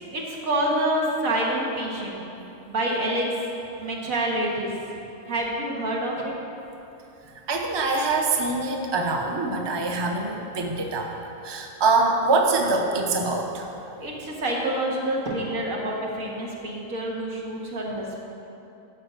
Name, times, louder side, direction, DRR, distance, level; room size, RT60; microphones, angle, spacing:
voice 1, 0.0-2.2 2.7-3.3 3.8-4.7 5.3-6.3 14.0-18.2, right 1 dB, 85° right, -3 dB, 2.0 m, -27 dB
voice 2, 7.5-11.1 11.4-13.6, right 3 dB, 25° right, 1 dB, 0.7 m, -24 dB
11.5 x 4.3 x 7.9 m, 2.8 s
omnidirectional pair, 1.4 m